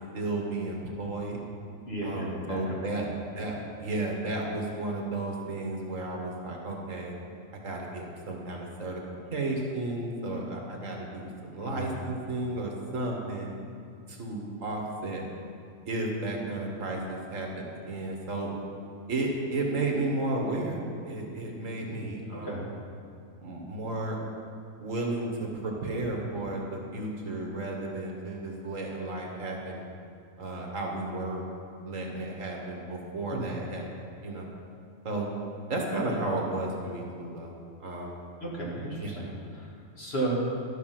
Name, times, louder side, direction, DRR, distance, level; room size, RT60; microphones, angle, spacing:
voice 1, 0.1-1.4 2.0-3.1 3.4-7.1 7.6-9.0 9.3-13.5 14.1-15.2 15.9-18.5 19.1-22.7 23.4-24.2 24.8-29.8 30.4-31.4 31.8-33.9 34.2-34.5 35.0-35.3 35.7-37.5 37.8-38.2 39.0-39.1, right 2 dB, 65° right, 0 dB, 1.7 m, -33 dB
voice 2, 1.8-3.1 11.6-11.9 21.9-22.6 33.3-33.6 38.4-40.3, right 2 dB, 45° left, -4 dB, 2.0 m, -35 dB
12.5 x 5.9 x 5.9 m, 2.3 s
omnidirectional pair, 1.5 m